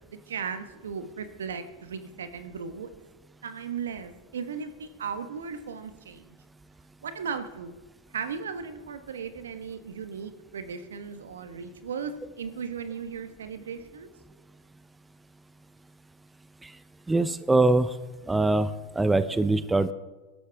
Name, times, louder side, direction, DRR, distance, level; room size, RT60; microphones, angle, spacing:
voice 1, 0.1-2.9 3.4-6.3 7.0-7.7 8.1-14.1, right 6 dB, 80° right, 10 dB, 1.3 m, -36 dB
voice 2, 17.1-17.9 18.3-19.9, right 2 dB, 10° right, 13 dB, 0.7 m, -23 dB
21.5 x 12.0 x 3.6 m, 1.2 s
hypercardioid pair, 95°, 0 cm